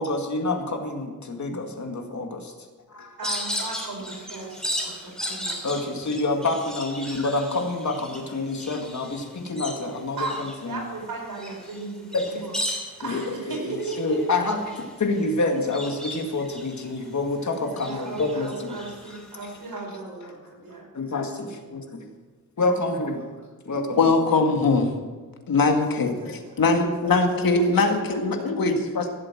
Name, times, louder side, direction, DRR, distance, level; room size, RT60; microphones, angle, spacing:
voice 1, 0.0-2.5 2.9-3.2 5.6-10.8 12.1-12.4 13.0-14.6 15.0-18.8 20.9-22.1 22.6-23.2 23.7-24.0, left 2 dB, 55° left, 4 dB, 2.2 m, -27 dB
sound 1, 3.2-17.3 17.7-19.6, equal, ahead, 3.0 m, -36 dB
voice 2, 3.2-5.6 10.2-14.4 17.0-17.2 17.7-20.9 21.3-21.7 22.6-23.1 23.9-24.6 25.9-28.5, right 3 dB, 85° right, -1 dB, 4.8 m, -37 dB
voice 3, 24.0-24.9 25.5-29.1, left 3 dB, 80° left, 4 dB, 1.9 m, -21 dB
16.5 x 7.7 x 7.5 m, 1.4 s
wide cardioid pair, 100°, 34 cm